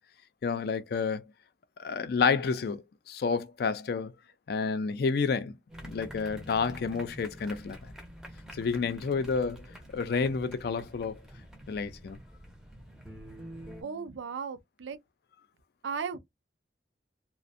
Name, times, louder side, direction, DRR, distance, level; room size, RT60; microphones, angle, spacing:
voice 1, 0.4-1.2 1.8-4.1 4.5-5.6 5.8-7.9 8.5-9.7 9.9-11.2 11.7-12.2, left 5 dB, 55° left, 0.3 m, -30 dB
sound 1, 5.7-13.8, equal, 5° right, 0.5 m, -47 dB
voice 2, 13.8-15.0 15.8-16.2, right 6 dB, 85° right, 0.4 m, -36 dB
2.4 x 2.1 x 2.5 m
head